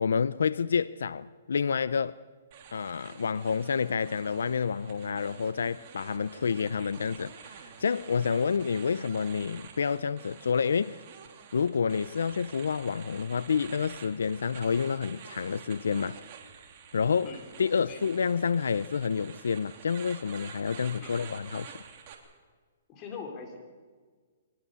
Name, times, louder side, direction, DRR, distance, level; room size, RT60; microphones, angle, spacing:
voice 1, 0.0-2.2 2.7-11.0 11.5-16.2 16.9-21.8, left 6 dB, 90° left, 0.5 m, -29 dB
sound 1, 2.5-22.1, right 7 dB, 40° right, 3.4 m, -49 dB
voice 2, 22.9-23.6, left 5 dB, 25° left, 4.3 m, -41 dB
23.0 x 20.0 x 7.0 m
hypercardioid pair, 155°, 0 cm